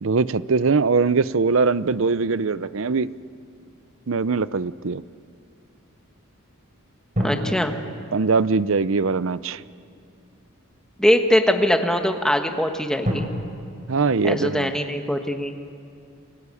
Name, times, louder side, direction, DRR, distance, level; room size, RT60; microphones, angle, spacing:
voice 1, 0.0-3.1 4.1-5.0 8.1-9.6 13.9-14.7, right 4 dB, 65° right, 16 dB, 0.6 m, -21 dB
sound 1, 1.7-4.3 7.1-10.5 11.2-11.3 13.0-13.1, equal, 35° right, 4.4 m, -33 dB
voice 2, 7.2-7.7 11.0-13.3 14.2-15.5, equal, 5° left, 5 dB, 1.4 m, -21 dB
29.5 x 21.5 x 8.5 m, 2.4 s
head